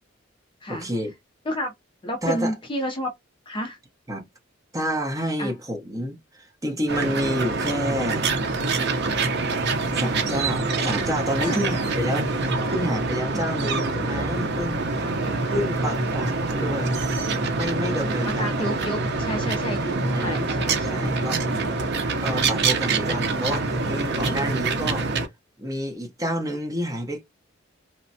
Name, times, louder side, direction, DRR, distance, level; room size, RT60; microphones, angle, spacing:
voice 1, 0.7-1.1 2.2-2.5 4.1-4.3 4.7-8.3 10.0-15.1 15.5-17.0 17.5-18.5 20.1-21.4 22.2-25.1 25.6-27.2, equal, 15° right, 0.8 m, -29 dB
voice 2, 2.0-3.1 3.5-3.8 5.4-5.5 10.8-10.9 11.4-11.8 13.3-13.5 15.2-15.5 18.4-22.4, equal, 25° left, 0.5 m, -31 dB
sound 1, 6.9-25.3, right 3 dB, 55° right, 0.6 m, -25 dB
3.1 x 2.1 x 2.6 m
head